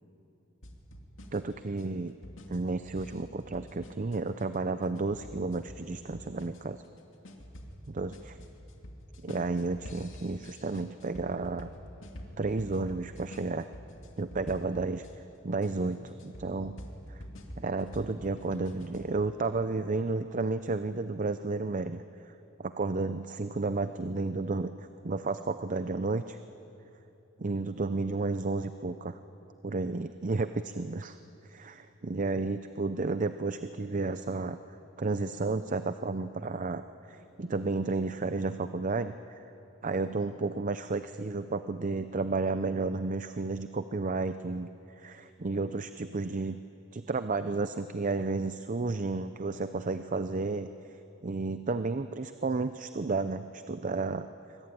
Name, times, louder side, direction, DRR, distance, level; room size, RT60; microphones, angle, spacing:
sound 1, 0.6-15.1 15.6-19.1, equal, 70° left, 2.7 m, -47 dB
voice 1, 1.3-2.1 2.5-6.8 7.9-8.4 9.2-11.7 12.4-13.7 14.2-15.1 15.4-16.8 17.1-17.2 17.6-22.3 22.6-26.4 27.4-29.2 29.6-31.2 31.5-34.6 35.0-39.4 39.8-44.7 45.0-46.6 46.9-50.7 51.2-54.3, right 3 dB, 40° right, 10 dB, 0.6 m, -32 dB
23.5 x 21.0 x 9.2 m, 2.9 s
head